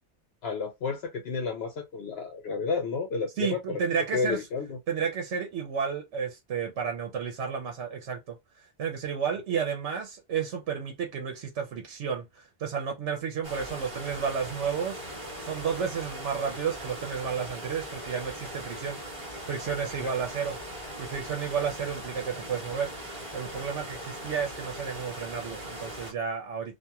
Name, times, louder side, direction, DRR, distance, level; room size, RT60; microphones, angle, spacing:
voice 1, 0.4-3.8 4.1-4.8 19.8-20.1, left 4 dB, 65° left, 0.8 m, -31 dB
voice 2, 3.4-4.4 4.9-8.4 8.8-15.0 15.4-19.0 19.5-20.6 21.0-22.9 23.3-26.8, right 6 dB, 80° right, 1.0 m, -32 dB
sound 1, 13.4-26.1, right 1 dB, 30° right, 1.4 m, -40 dB
2.8 x 2.5 x 2.2 m
omnidirectional pair, 1.2 m